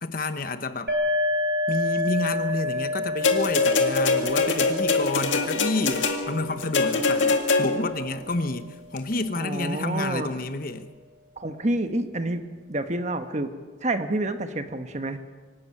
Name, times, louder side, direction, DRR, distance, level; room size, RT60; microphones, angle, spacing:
voice 1, 0.0-0.9 1.7-10.9, left 2 dB, 45° left, 10 dB, 1.0 m, -29 dB
sound 1, 0.9-8.4, left 2 dB, 60° right, 3.3 m, -30 dB
sound 2, 3.2-8.0 9.0-9.1, left 3 dB, 75° left, 2.1 m, -23 dB
voice 2, 9.4-10.3 11.4-12.4 12.7-13.5 13.8-15.2, right 2 dB, 35° right, 8 dB, 1.2 m, -28 dB
24.0 x 12.5 x 8.8 m, 1.5 s
head